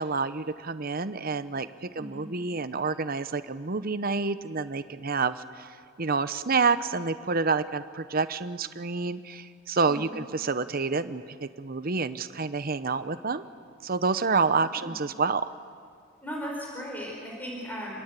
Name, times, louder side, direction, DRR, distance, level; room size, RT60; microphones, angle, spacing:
voice 1, 0.0-5.7 6.0-13.4 13.8-15.5, right 4 dB, 45° right, 12 dB, 0.9 m, -28 dB
voice 2, 1.9-2.3 9.9-10.2 14.7-14.9 16.2-18.0, equal, 10° left, -2 dB, 4.8 m, -37 dB
27.5 x 21.0 x 8.3 m, 2.2 s
head